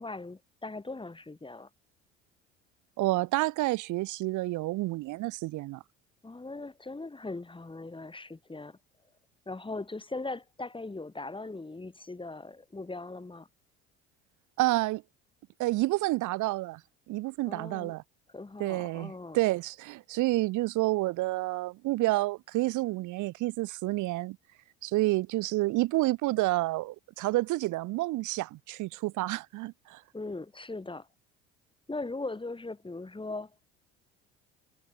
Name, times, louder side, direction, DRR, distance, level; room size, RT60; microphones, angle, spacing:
voice 1, 0.0-1.7 6.2-8.8 9.5-13.5 17.5-17.9 18.3-19.4 30.1-31.1 31.9-33.5, left 3 dB, 15° left, 4.7 m, -39 dB
voice 2, 3.0-5.8 14.6-15.0 15.6-16.8 17.1-18.0 18.6-24.4 24.8-30.0, right 19 dB, 60° right, 2.9 m, -29 dB
hypercardioid pair, 65°, 33 cm